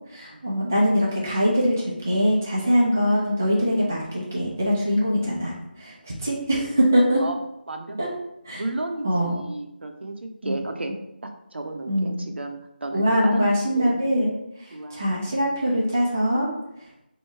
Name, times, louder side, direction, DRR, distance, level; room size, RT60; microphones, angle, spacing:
voice 1, 0.1-7.2 8.0-8.1 8.4-8.6 9.0-9.4 10.4-10.5 11.8-12.4 12.9-14.3 14.6-16.5, equal, 15° right, -5 dB, 0.4 m, -23 dB
voice 2, 8.5-10.9 11.5-13.5 13.8-14.1 14.7-15.3, right 2 dB, 85° right, 4 dB, 0.7 m, -33 dB
3.1 x 2.7 x 4.4 m, 0.81 s
figure-of-eight pair, 180°, 6 cm